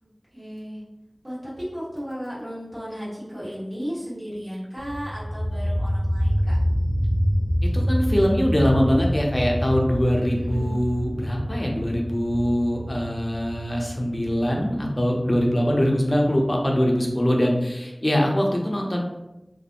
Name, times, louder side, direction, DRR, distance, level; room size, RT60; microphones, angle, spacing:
voice 1, 0.3-0.8 1.2-6.6 10.4-10.8, equal, 50° right, -10 dB, 1.3 m, -34 dB
sound 1, 4.8-16.3, equal, 85° left, 0.4 m, -26 dB
voice 2, 7.6-19.0, equal, 30° left, 0 dB, 0.5 m, -23 dB
2.3 x 2.0 x 2.8 m, 0.94 s
wide cardioid pair, 45°, 0 cm